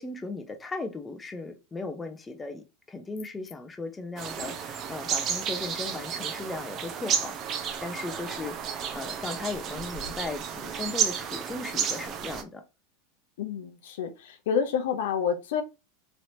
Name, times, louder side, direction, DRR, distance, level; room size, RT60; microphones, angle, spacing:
voice 1, 0.0-7.4 7.8-12.6, left 3 dB, 15° left, 0.6 m, -37 dB
sound 1, 4.2-12.4, right 8 dB, 40° right, 0.6 m, -32 dB
voice 2, 13.4-15.6, left 7 dB, 75° left, 0.5 m, -28 dB
3.1 x 2.8 x 2.7 m
hypercardioid pair, 105°, 0 cm